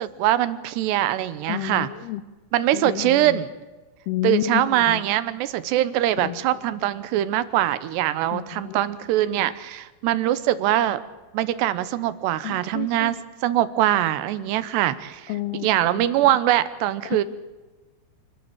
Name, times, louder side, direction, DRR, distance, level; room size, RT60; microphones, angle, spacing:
voice 1, 0.0-1.9 2.5-3.5 4.2-11.0 11.3-13.2 13.4-15.3 15.6-17.2, right 13 dB, 75° right, 15 dB, 3.0 m, -22 dB
voice 2, 1.5-2.2 2.7-3.4 4.1-5.0 6.2-6.4 8.3-8.8 12.4-13.2 15.3-15.7 16.0-16.3 17.1-17.2, left 14 dB, 75° left, 13 dB, 2.5 m, -30 dB
27.5 x 12.5 x 8.8 m, 1.2 s
omnidirectional pair, 5.1 m